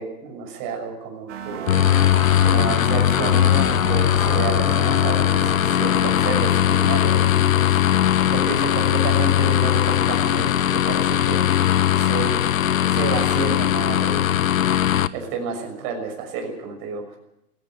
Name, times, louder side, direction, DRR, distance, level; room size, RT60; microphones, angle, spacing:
voice 1, 0.0-1.7 2.4-7.8 8.2-12.4 12.9-14.3 15.1-17.2, right 5 dB, 30° right, 2 dB, 6.4 m, -30 dB
sound 1, 1.3-9.9, right 11 dB, 45° right, 2.9 m, -36 dB
sound 2, 1.7-15.1, left 11 dB, 60° left, 1.1 m, -19 dB
18.5 x 17.0 x 9.1 m, 0.81 s
hypercardioid pair, 155°, 46 cm